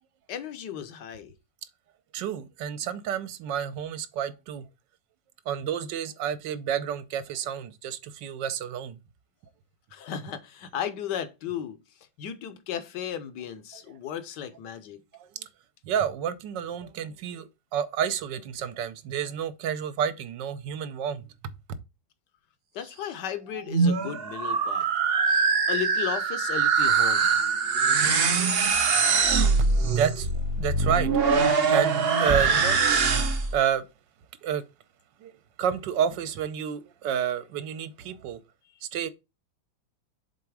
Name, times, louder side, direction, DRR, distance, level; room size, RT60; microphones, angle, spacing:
voice 1, 0.3-1.3 9.9-11.8 12.2-15.0 22.7-24.9 25.7-27.4, left 9 dB, 70° left, 1.3 m, -35 dB
voice 2, 2.1-4.7 5.5-9.0 13.7-13.8 15.1-15.5 15.8-21.5 29.6-30.3 30.6-32.8 33.1-33.2 33.5-33.9 34.4-34.6 35.2-35.3 35.6-38.4 38.8-39.1, right 8 dB, 70° right, 1.2 m, -30 dB
sound 1, 23.5-33.6, right 5 dB, 55° right, 0.7 m, -23 dB
6.9 x 4.0 x 4.7 m
omnidirectional pair, 2.1 m